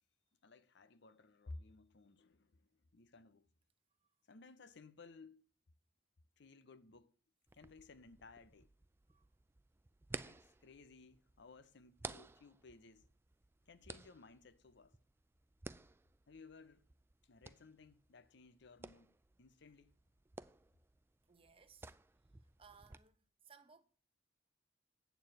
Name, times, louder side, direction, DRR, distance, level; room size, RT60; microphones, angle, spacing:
voice 1, 0.4-3.5 4.3-5.5 6.4-7.1 7.5-8.7 10.2-13.1 13.6-15.0 16.3-16.8 17.2-19.9, left 3 dB, 65° left, 0.8 m, -58 dB
sound 1, 7.5-23.0, right 3 dB, 10° right, 0.3 m, -55 dB
voice 2, 21.3-21.9 22.6-23.8, right 6 dB, 30° right, 0.9 m, -63 dB
9.1 x 4.7 x 7.7 m
head